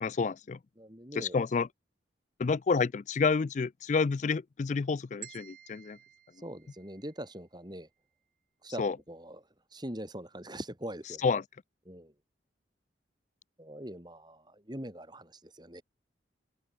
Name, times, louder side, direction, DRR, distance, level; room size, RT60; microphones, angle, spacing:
voice 1, 0.0-0.6 1.1-1.7 2.4-6.0 8.8-9.0 11.2-11.4, left 4 dB, 40° left, 0.3 m, -29 dB
voice 2, 0.8-1.4 6.4-7.9 8.6-11.2 11.9-12.1 13.6-15.8, right 1 dB, 25° right, 4.9 m, -43 dB
sound 1, 5.2-7.4, right 12 dB, 45° right, 3.0 m, -52 dB
head